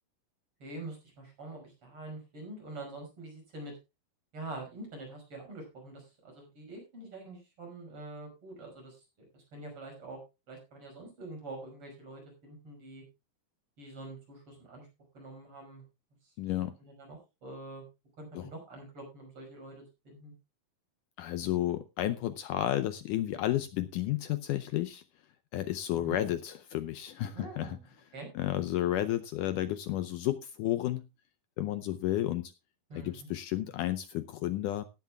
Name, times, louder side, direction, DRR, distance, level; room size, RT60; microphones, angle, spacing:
voice 1, 0.6-3.7 4.3-10.2 10.5-13.0 13.8-14.9 15.1-15.8 16.2-16.3 16.8-17.8 18.2-20.3 25.9-26.2 27.3-27.9 28.1-28.3 32.9-33.3, right 2 dB, 40° right, 2 dB, 6.6 m, -45 dB
voice 2, 16.4-16.8 18.3-18.5 21.2-25.0 25.5-27.8 28.4-31.0 31.6-32.5 33.0-34.8, left 13 dB, 75° left, 12 dB, 2.0 m, -32 dB
17.5 x 11.5 x 2.3 m, 0.26 s
omnidirectional pair, 4.1 m